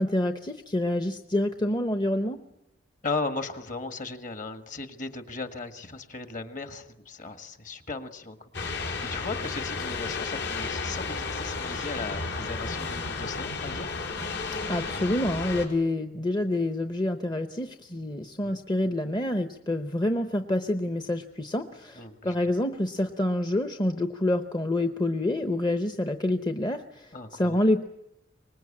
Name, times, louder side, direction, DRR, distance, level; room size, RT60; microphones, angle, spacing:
voice 1, 0.0-2.4 14.7-27.8, left 1 dB, 25° left, 7 dB, 0.8 m, -27 dB
voice 2, 3.0-14.0 18.4-18.6 22.0-22.4 27.1-27.6, left 3 dB, 45° left, 8 dB, 1.7 m, -37 dB
sound 1, 8.5-15.7, left 4 dB, 75° left, 4.3 m, -33 dB
25.0 x 20.5 x 8.7 m, 0.85 s
head